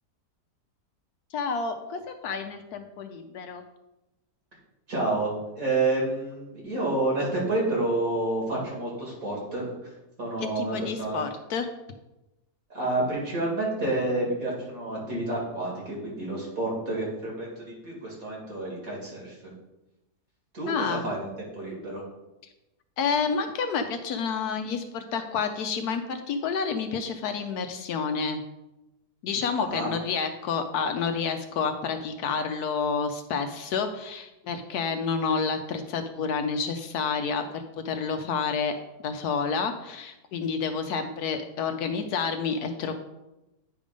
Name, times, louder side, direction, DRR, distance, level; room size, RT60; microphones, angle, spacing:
voice 1, 1.3-3.6 10.4-11.7 20.7-21.1 23.0-28.4 29.2-38.8 39.0-42.9, left 5 dB, 75° left, 7 dB, 1.1 m, -29 dB
voice 2, 4.9-9.9 10.2-11.2 12.7-19.5 20.5-21.3 21.5-22.0 29.6-29.9, right 2 dB, 55° right, -4 dB, 2.7 m, -29 dB
9.2 x 3.5 x 5.0 m, 0.96 s
omnidirectional pair, 1.8 m